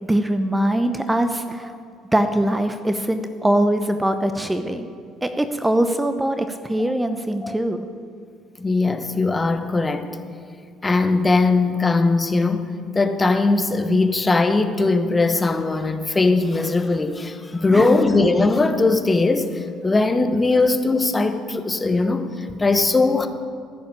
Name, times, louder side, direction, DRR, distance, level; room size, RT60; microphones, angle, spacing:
voice 1, 0.0-1.7 2.1-4.9 5.2-7.9 17.7-18.0, right 1 dB, 10° right, 8 dB, 0.9 m, -22 dB
voice 2, 8.6-10.1 10.8-23.3, left 3 dB, 20° left, 8 dB, 1.2 m, -20 dB
15.5 x 7.1 x 8.7 m, 2.2 s
figure-of-eight pair, 55°, 0 cm